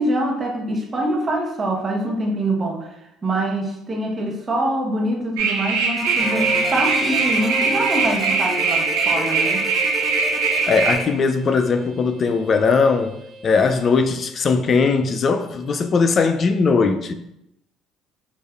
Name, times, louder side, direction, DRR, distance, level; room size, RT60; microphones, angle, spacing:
voice 1, 0.0-2.9 3.2-9.7, right 1 dB, 30° right, 1.0 m, -24 dB
sound 1, 5.4-11.0, right 4 dB, 85° right, 0.6 m, -21 dB
sound 2, 6.0-11.0, equal, 10° left, 0.8 m, -33 dB
sound 3, 6.2-14.1, equal, 10° right, 1.4 m, -34 dB
voice 2, 10.7-13.2 13.4-17.1, left 4 dB, 45° left, 0.3 m, -19 dB
4.9 x 2.5 x 2.4 m
hypercardioid pair, 65°, 0 cm